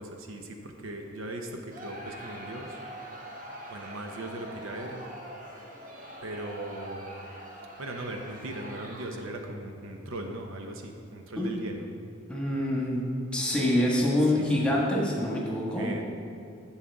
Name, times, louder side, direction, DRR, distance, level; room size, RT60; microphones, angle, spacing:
voice 1, 0.0-2.8 3.7-5.1 6.2-7.2 7.8-11.8 14.4-14.7 15.8-16.0, right 1 dB, 70° right, 3 dB, 0.8 m, -39 dB
Crowd, 1.7-9.4, right 1 dB, 40° right, 1.2 m, -44 dB
voice 2, 12.3-13.0 13.3-15.9, left 1 dB, 5° left, -4 dB, 1.4 m, -26 dB
11.0 x 7.3 x 3.5 m, 2.5 s
head